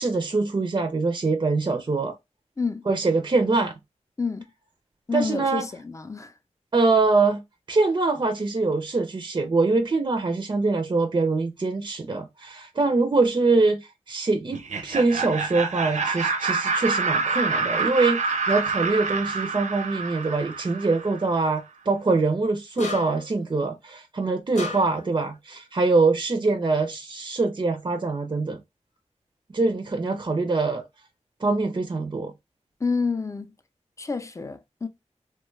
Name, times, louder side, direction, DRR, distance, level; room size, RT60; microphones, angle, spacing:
voice 1, 0.0-2.2 2.9-3.7 5.1-5.7 6.7-7.4 7.7-28.6 29.5-30.8 31.4-32.3, right 3 dB, 40° right, 0.4 m, -24 dB
voice 2, 2.6-2.9 4.2-4.5 5.1-6.3 32.8-33.5 34.0-34.9, left 4 dB, 25° left, 0.4 m, -28 dB
Laughter, 14.5-21.3, right 4 dB, 90° right, 0.6 m, -27 dB
sound 1, 22.8-23.4 24.6-25.1, left 4 dB, 85° left, 1.0 m, -33 dB
3.0 x 2.2 x 3.1 m
wide cardioid pair, 95°, 12 cm